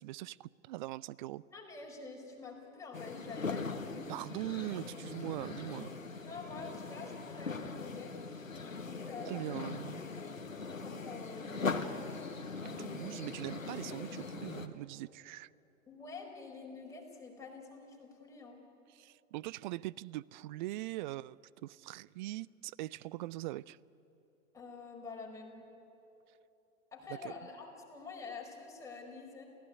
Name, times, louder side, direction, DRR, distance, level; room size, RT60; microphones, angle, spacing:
voice 1, 0.0-1.4 4.1-5.9 9.2-10.0 12.6-15.5 18.9-23.8 27.1-27.3, right 17 dB, 40° right, 0.5 m, -41 dB
voice 2, 1.5-4.1 6.3-8.2 8.7-9.5 10.0-10.3 10.7-12.2 12.6-13.1 15.9-18.6 24.5-25.6 26.9-29.4, left 4 dB, 10° left, 4.9 m, -48 dB
sound 1, 2.9-14.7, left 4 dB, 85° left, 1.5 m, -41 dB
27.5 x 16.5 x 9.5 m
figure-of-eight pair, 100°, 39 cm